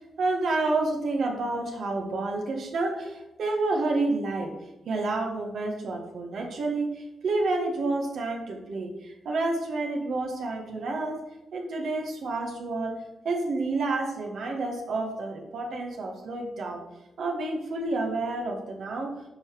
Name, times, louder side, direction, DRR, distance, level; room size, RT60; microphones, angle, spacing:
voice 1, 0.0-4.5 4.8-11.2 11.5-13.0 13.2-16.8 17.2-19.1, right 2 dB, 70° right, 1 dB, 1.6 m, -29 dB
8.3 x 4.9 x 4.8 m, 0.96 s
supercardioid pair, 40°, 0 cm